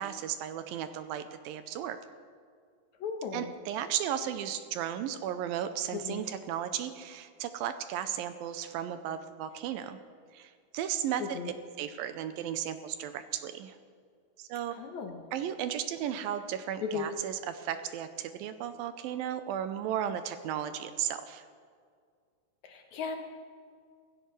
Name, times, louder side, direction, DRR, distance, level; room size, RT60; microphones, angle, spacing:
voice 1, 0.0-2.0 3.3-10.0 10.3-13.8 14.4-14.7 15.3-21.5, right 10 dB, 80° right, 10 dB, 2.2 m, -35 dB
voice 2, 3.0-3.5 5.9-6.2 11.4-11.5 14.7-15.2 16.8-17.1 22.6-23.2, left 6 dB, 70° left, 4 dB, 1.8 m, -36 dB
19.5 x 15.5 x 3.2 m, 2.1 s
omnidirectional pair, 4.5 m